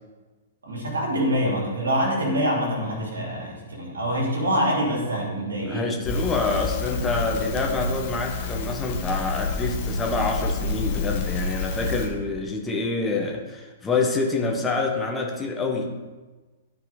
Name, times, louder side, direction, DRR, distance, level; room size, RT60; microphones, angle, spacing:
voice 1, 0.6-5.9, equal, 70° right, -1 dB, 2.7 m, -25 dB
voice 2, 5.7-15.9, left 3 dB, 15° left, 0 dB, 1.3 m, -26 dB
Crackle, 6.0-12.1, left 3 dB, 40° left, 1.3 m, -29 dB
13.0 x 4.6 x 4.0 m, 1.3 s
figure-of-eight pair, 110°, 0 cm